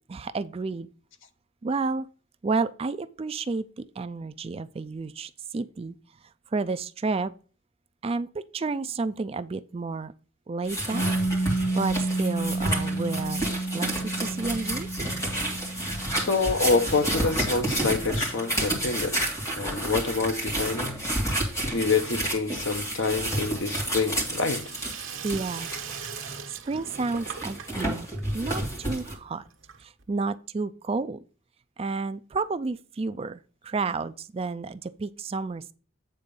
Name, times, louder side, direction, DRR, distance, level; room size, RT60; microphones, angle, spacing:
voice 1, 0.1-0.9 1.6-2.1 2.4-5.9 6.5-7.3 8.0-10.1 10.5-11.1 11.7-13.4 13.7-14.9 25.2-25.7 26.7-28.1 28.3-29.4 29.8-31.2 31.8-35.7, right 3 dB, 30° right, 0.4 m, -31 dB
sound 1, 10.6-26.4 26.9-29.1, right 1 dB, 15° left, 2.5 m, -30 dB
Piano, 10.9-18.2, right 2 dB, 35° left, 1.8 m, -31 dB
voice 2, 16.2-19.2 19.6-21.0 21.6-24.7, left 4 dB, 65° left, 0.9 m, -27 dB
Sink (filling or washing), 23.3-30.1, right 7 dB, 75° right, 1.2 m, -41 dB
8.9 x 3.8 x 5.3 m
head